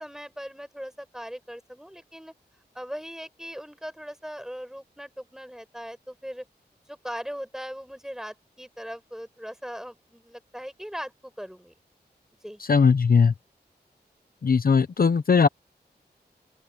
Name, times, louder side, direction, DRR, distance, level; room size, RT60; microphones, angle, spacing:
voice 1, 0.0-2.3 2.7-6.4 6.9-11.7 12.4-12.6, equal, 5° right, 6.6 m, -39 dB
voice 2, 12.7-13.3 14.4-15.5, left 5 dB, 60° left, 0.8 m, -19 dB
open air
wide cardioid pair, 60°, 17 cm